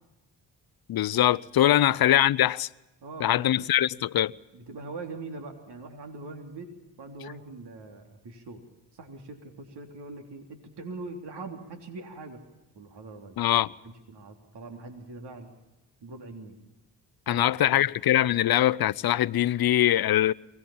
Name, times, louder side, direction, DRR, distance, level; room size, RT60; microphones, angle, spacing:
voice 1, 0.9-2.7 3.2-4.3 13.4-13.7 17.3-20.3, left 12 dB, 50° left, 0.7 m, -22 dB
voice 2, 3.0-3.7 4.5-6.7 7.0-8.6 8.9-12.4 12.8-13.4 13.8-15.5 16.0-16.6 17.3-17.8, right 3 dB, 60° right, 3.6 m, -42 dB
23.5 x 18.5 x 7.2 m
supercardioid pair, 55°, 46 cm